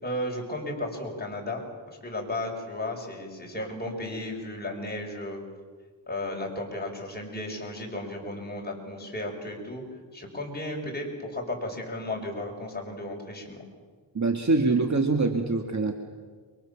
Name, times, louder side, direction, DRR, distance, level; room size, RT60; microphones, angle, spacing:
voice 1, 0.0-5.4 6.1-9.8 10.1-13.6, left 1 dB, 20° left, 0 dB, 6.7 m, -34 dB
voice 2, 14.1-15.9, right 3 dB, 40° right, 4 dB, 2.2 m, -24 dB
29.5 x 24.0 x 7.3 m, 1.5 s
cardioid pair, 90°, 45 cm